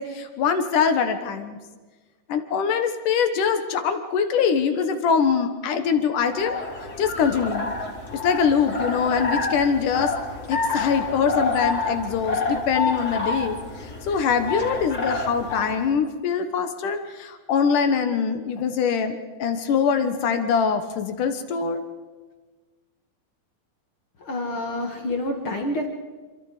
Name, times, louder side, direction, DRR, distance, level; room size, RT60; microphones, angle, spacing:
voice 1, 0.0-1.6 2.3-6.6 7.0-7.7 8.1-10.1 10.5-13.6 14.0-21.8, left 6 dB, 60° left, 8 dB, 2.4 m, -23 dB
sound 1, 6.1-15.9, left 3 dB, 25° left, 2.6 m, -28 dB
voice 2, 24.2-25.9, left 1 dB, 40° left, 3 dB, 2.0 m, -28 dB
26.5 x 26.5 x 5.0 m, 1.3 s
omnidirectional pair, 4.8 m